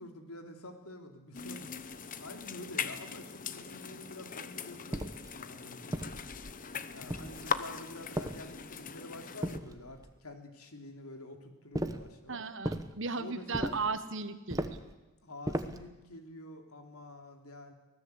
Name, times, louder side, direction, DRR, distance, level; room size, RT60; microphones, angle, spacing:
voice 1, 0.0-1.7 2.2-6.2 6.9-12.5 13.1-13.7 15.2-17.7, left 2 dB, 80° left, 5 dB, 3.3 m, -48 dB
sound 1, 1.3-9.6, left 6 dB, 35° left, 1.0 m, -40 dB
sound 2, 4.9-5.3 5.9-6.6 7.1-7.6 8.2-8.8 9.4-10.1 11.7-12.1 12.6-12.9 13.5-13.9 14.5-14.9 15.5-15.9, right 1 dB, 15° right, 1.0 m, -36 dB
voice 2, 12.3-14.8, right 4 dB, 55° right, 11 dB, 1.4 m, -36 dB
24.0 x 17.5 x 8.2 m, 1.0 s
head